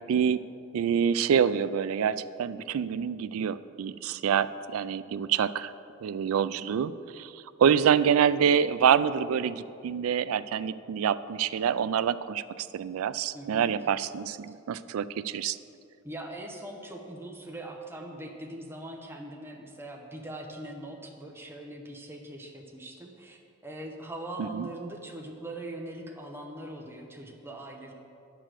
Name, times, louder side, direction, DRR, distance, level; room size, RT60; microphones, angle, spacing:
voice 1, 0.1-0.4 0.7-5.7 6.0-15.6 24.4-24.7, right 8 dB, 85° right, 15 dB, 0.3 m, -26 dB
voice 2, 13.3-13.7 16.0-27.9, right 1 dB, 10° right, 1 dB, 0.8 m, -41 dB
9.8 x 5.0 x 7.5 m, 2.5 s
head